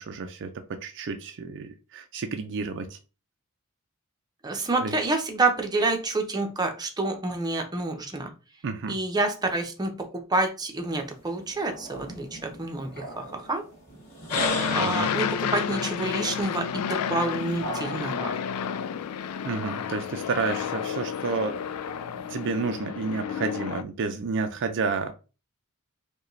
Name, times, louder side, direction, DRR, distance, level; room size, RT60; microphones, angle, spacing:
voice 1, 0.0-3.0 4.8-5.0 8.6-9.0 14.8-15.1 19.4-21.6 22.1-25.1, right 4 dB, 55° right, 7 dB, 0.4 m, -31 dB
voice 2, 4.4-8.3 8.9-13.6 14.7-18.4, right 2 dB, 20° right, 4 dB, 0.6 m, -28 dB
sound 1, 10.8-18.4 19.2-20.7 21.0-22.3, equal, 40° left, 2.1 m, -37 dB
Aircraft, 14.3-23.8, left 8 dB, 90° left, 0.4 m, -31 dB
4.7 x 2.3 x 3.1 m, 0.32 s
head